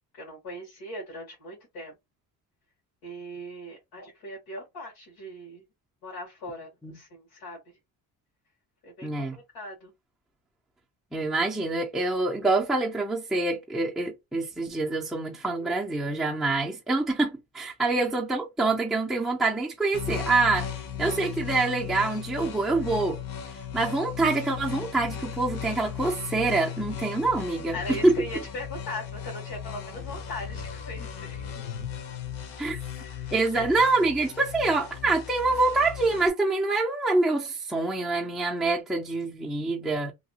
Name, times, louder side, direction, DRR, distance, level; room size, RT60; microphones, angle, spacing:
voice 1, 0.1-1.9 3.0-5.6 6.0-7.6 8.8-9.3 9.5-9.9 17.9-18.0 27.7-31.5 32.6-33.7, left 1 dB, 85° left, 1.5 m, -39 dB
voice 2, 9.0-9.4 11.1-20.7 21.0-23.2 23.7-28.2 32.6-32.8 33.3-40.1, right 3 dB, ahead, 0.3 m, -26 dB
sound 1, 19.9-36.3, left 8 dB, 60° left, 0.9 m, -36 dB
2.9 x 2.3 x 2.7 m
cardioid pair, 145°, 38 cm